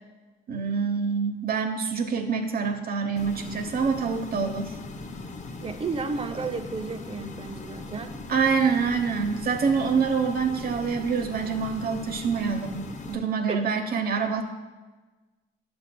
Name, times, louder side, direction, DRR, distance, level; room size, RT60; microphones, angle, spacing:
voice 1, 0.5-4.8 8.3-14.4, right 5 dB, 50° right, 5 dB, 0.9 m, -26 dB
sound 1, 3.2-13.2, left 3 dB, 35° left, 0.7 m, -39 dB
voice 2, 5.6-8.2 13.5-13.6, right 4 dB, 30° right, 9 dB, 0.6 m, -32 dB
11.0 x 6.8 x 2.2 m, 1.3 s
cardioid pair, 90°, 20 cm